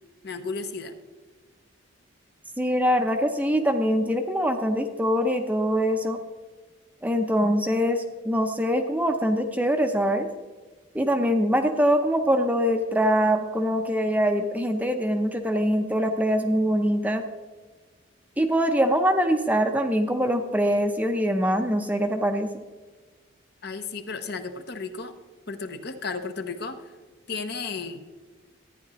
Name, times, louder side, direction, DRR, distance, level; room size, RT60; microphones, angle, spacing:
voice 1, 0.2-0.9 23.6-25.1 25.5-26.9 27.3-28.0, left 4 dB, 55° left, 8 dB, 0.8 m, -34 dB
voice 2, 2.6-6.2 7.0-10.3 10.9-17.2 18.4-22.5, equal, 10° right, 5 dB, 0.6 m, -23 dB
13.0 x 9.7 x 3.1 m, 1.3 s
head